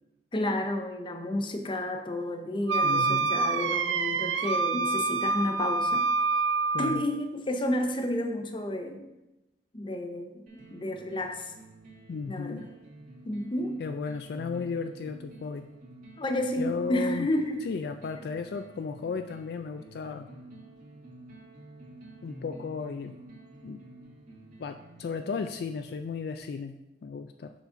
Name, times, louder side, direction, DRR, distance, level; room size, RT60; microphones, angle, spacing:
voice 1, 0.3-6.0 6.8-9.0 9.7-10.4 10.7-11.5 12.3-12.7 13.2-13.8 16.2-17.6, left 1 dB, 25° left, 5 dB, 0.7 m, -31 dB
Wind instrument woodwind instrument, 2.7-7.1, right 4 dB, 80° right, 0.4 m, -27 dB
voice 2, 2.8-3.3 6.7-7.0 12.1-12.7 13.8-15.7 16.6-17.3 17.6-20.3 22.2-23.2 23.6-23.8 24.6-27.5, left 5 dB, 60° left, 8 dB, 0.3 m, -35 dB
sound 1, 10.5-26.4, right 1 dB, 45° right, 1.9 m, -50 dB
7.0 x 4.0 x 5.6 m, 0.96 s
head